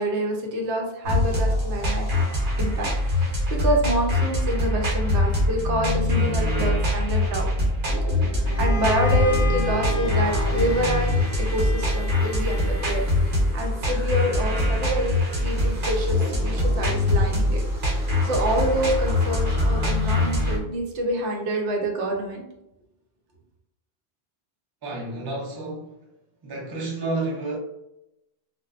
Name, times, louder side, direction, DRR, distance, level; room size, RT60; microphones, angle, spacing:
voice 1, 0.0-2.0 2.6-7.5 8.2-22.5, right 1 dB, 85° right, 0.9 m, -27 dB
sound 1, 1.0-20.6, left 1 dB, 55° right, 0.8 m, -23 dB
Bowed string instrument, 8.4-13.3, left 2 dB, 90° left, 0.9 m, -33 dB
sound 2, 9.0-19.9, left 2 dB, 15° right, 0.7 m, -41 dB
voice 2, 24.8-26.0 26.4-27.6, right 2 dB, 35° right, 0.4 m, -30 dB
2.6 x 2.1 x 2.3 m
omnidirectional pair, 1.2 m